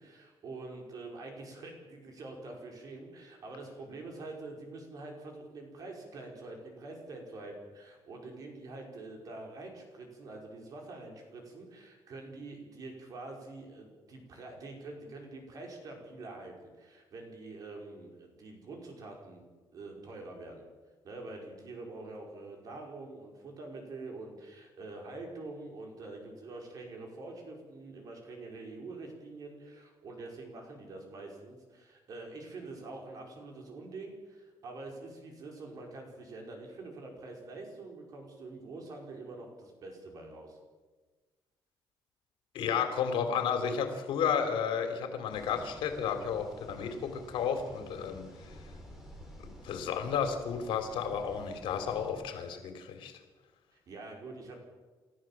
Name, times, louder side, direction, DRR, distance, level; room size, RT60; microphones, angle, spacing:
voice 1, 0.0-19.4 19.7-20.6 21.0-40.6 53.7-54.6, right 2 dB, 45° right, 1 dB, 5.4 m, -45 dB
voice 2, 42.5-48.2 49.6-53.1, left 7 dB, 90° left, 6 dB, 3.4 m, -32 dB
sound 1, 45.3-52.1, equal, 5° right, 4.7 m, -51 dB
29.5 x 14.0 x 7.6 m, 1.3 s
cardioid pair, 180°, 9 cm